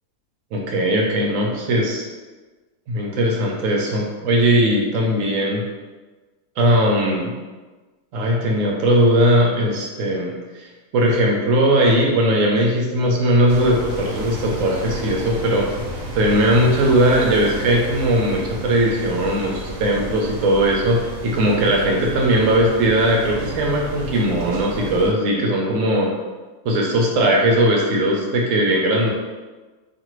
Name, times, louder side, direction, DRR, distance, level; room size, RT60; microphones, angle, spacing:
voice 1, 0.5-2.0 2.9-5.6 6.6-7.3 8.1-10.3 10.9-15.7 16.2-26.1 26.6-29.1, right 1 dB, 65° right, -2 dB, 0.9 m, -19 dB
sound 1, 13.5-25.1, right 1 dB, 85° right, 1.2 m, -32 dB
2.5 x 2.5 x 3.0 m, 1.3 s
omnidirectional pair, 1.6 m